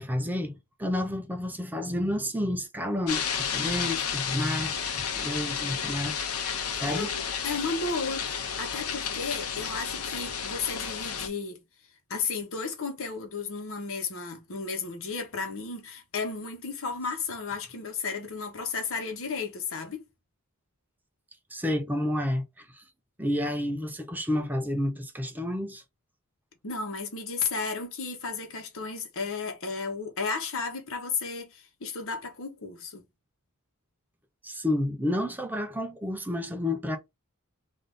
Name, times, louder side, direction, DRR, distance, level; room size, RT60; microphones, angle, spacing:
voice 1, 0.0-4.8 5.1-6.2 6.8-7.1 21.5-22.8 23.2-25.8 34.4-37.0, left 1 dB, 10° right, 0.6 m, -30 dB
sound 1, 3.1-11.3, left 7 dB, 85° left, 0.8 m, -32 dB
voice 2, 6.9-11.6 12.1-20.0 26.6-33.0, left 4 dB, 65° left, 1.1 m, -33 dB
3.5 x 2.6 x 3.8 m
head